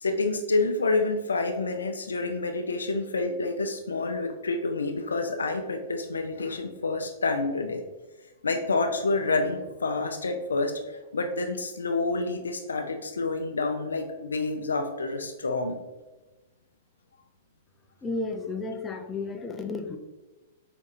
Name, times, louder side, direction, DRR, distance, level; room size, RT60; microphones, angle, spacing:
voice 1, 0.0-7.8 8.4-15.8, left 3 dB, 90° left, 5 dB, 0.3 m, -28 dB
voice 2, 18.0-20.0, left 3 dB, 15° left, 3 dB, 0.5 m, -32 dB
5.0 x 2.6 x 2.5 m, 1.1 s
hypercardioid pair, 115°, 0 cm